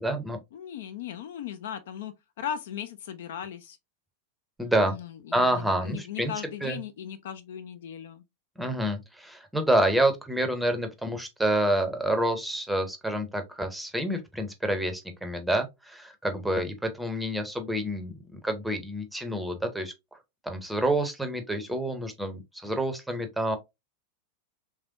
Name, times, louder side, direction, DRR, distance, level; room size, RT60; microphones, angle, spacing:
voice 1, 0.0-0.4 4.6-4.9 5.3-6.3 6.6-6.8 8.6-19.9 20.4-23.6, right 1 dB, 5° right, 0.7 m, -28 dB
voice 2, 0.5-3.8 4.9-8.2, left 9 dB, 55° left, 0.4 m, -38 dB
3.3 x 3.3 x 2.5 m
figure-of-eight pair, 90°, 0 cm